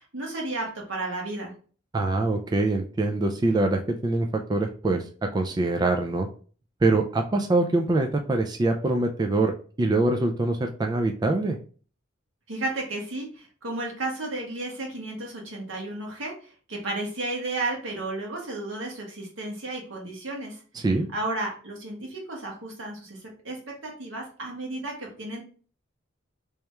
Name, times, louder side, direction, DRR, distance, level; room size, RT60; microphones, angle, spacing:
voice 1, 0.0-1.5 12.5-16.3 16.7-20.6 21.1-23.2 23.4-23.6 23.8-25.4, right 2 dB, 85° right, -1 dB, 1.3 m, -33 dB
voice 2, 1.9-5.0 5.3-6.3 6.8-9.5 9.8-11.6 20.7-21.1, right 2 dB, 20° right, 3 dB, 0.3 m, -24 dB
3.4 x 2.9 x 3.2 m, 0.41 s
head